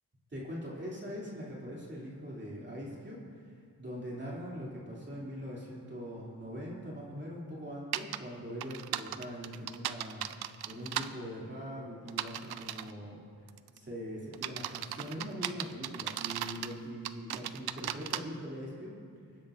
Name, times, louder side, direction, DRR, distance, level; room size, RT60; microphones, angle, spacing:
voice 1, 0.3-10.3 10.7-13.2 13.7-19.0, equal, 30° right, -5 dB, 2.9 m, -42 dB
sound 1, 7.9-8.2 8.6-11.1 12.1-12.9 13.5-13.8 14.3-16.7 17.0-18.2, right 12 dB, 85° right, 0.5 m, -36 dB
23.0 x 10.0 x 2.6 m, 2.2 s
cardioid pair, 85°, 37 cm